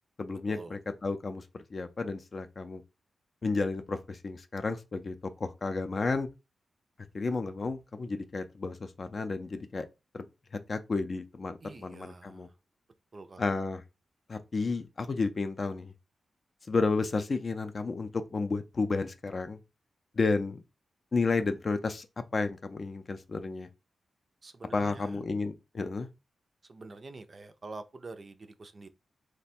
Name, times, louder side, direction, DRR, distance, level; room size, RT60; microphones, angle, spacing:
voice 1, 0.2-2.8 3.4-6.3 7.1-9.9 10.1-10.3 10.7-12.5 13.4-13.8 14.3-15.9 16.7-19.6 20.2-20.6 21.1-22.1 22.3-23.7 24.7-26.1, left 3 dB, 40° left, 0.4 m, -32 dB
voice 2, 11.6-12.5 13.1-13.5 24.4-25.2 26.7-28.9, right 3 dB, 40° right, 0.4 m, -46 dB
3.1 x 2.2 x 4.2 m
wide cardioid pair, 120°, 0 cm